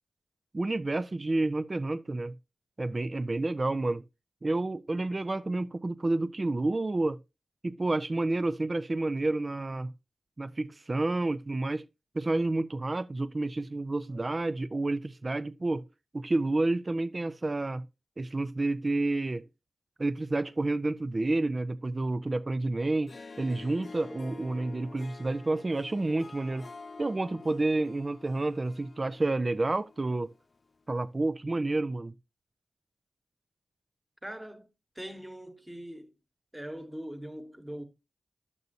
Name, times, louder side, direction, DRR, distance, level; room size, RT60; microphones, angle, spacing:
voice 1, 0.5-2.3 2.8-4.0 4.4-7.2 7.6-9.9 10.4-11.8 12.1-15.8 16.1-17.9 18.2-19.4 20.0-26.7 27.0-30.3 30.9-32.1, right 2 dB, 35° right, 0.4 m, -29 dB
Harp, 22.9-30.4, left 4 dB, 50° left, 0.4 m, -48 dB
voice 2, 34.2-34.7 34.9-36.1 36.5-37.8, equal, 10° right, 1.3 m, -41 dB
10.5 x 6.8 x 2.6 m
cardioid pair, 55°, 0 cm